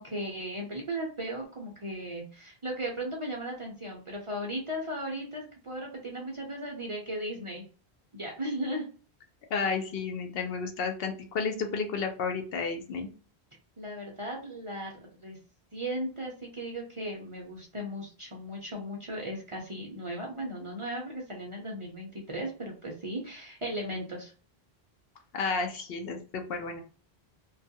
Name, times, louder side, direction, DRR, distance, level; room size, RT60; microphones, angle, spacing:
voice 1, 0.0-7.6 8.1-8.9 13.8-15.4 15.7-24.3, right 1 dB, 40° right, -1 dB, 0.5 m, -36 dB
voice 2, 9.5-13.1 25.3-26.8, left 4 dB, 70° left, 5 dB, 0.8 m, -32 dB
2.3 x 2.3 x 2.7 m, 0.38 s
omnidirectional pair, 1.1 m